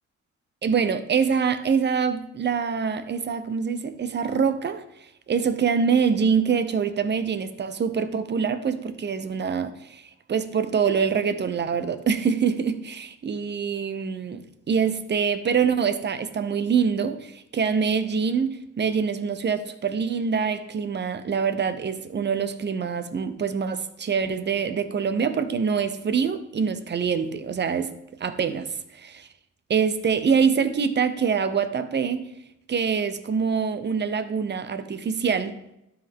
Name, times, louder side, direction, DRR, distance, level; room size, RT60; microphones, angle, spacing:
voice 1, 0.6-4.8 5.3-27.9 28.2-29.3 29.7-32.3 32.7-35.6, right 6 dB, 35° right, 0.8 m, -25 dB
12.0 x 4.7 x 3.7 m
cardioid pair, 90°, 30 cm